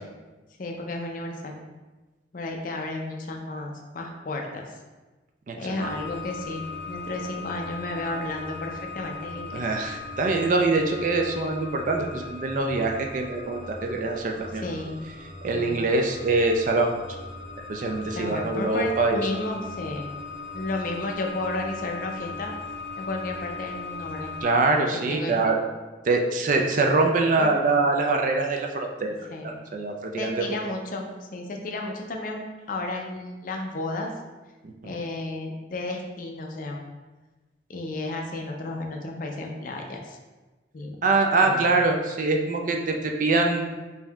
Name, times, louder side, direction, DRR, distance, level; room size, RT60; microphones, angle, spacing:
voice 1, 0.6-1.6 2.3-4.6 5.6-9.7 14.5-15.0 15.5-15.8 18.1-20.1 20.5-22.5 23.0-24.4 25.1-25.5 27.4-27.5 29.3-29.6 30.2-32.4 32.7-34.1 34.8-36.9 37.7-40.2 40.7-41.0 41.4-41.6, left 2 dB, 45° left, 2 dB, 0.5 m, -33 dB
voice 2, 5.5-5.9 9.5-14.6 15.4-17.0 17.7-19.4 24.4-25.6 26.1-29.1 29.7-30.6 34.8-34.9 41.0-43.6, right 3 dB, 45° right, 3 dB, 0.4 m, -24 dB
sound 1, 5.8-24.4, left 3 dB, 80° right, 0.7 m, -39 dB
5.2 x 2.7 x 2.3 m, 1.2 s
head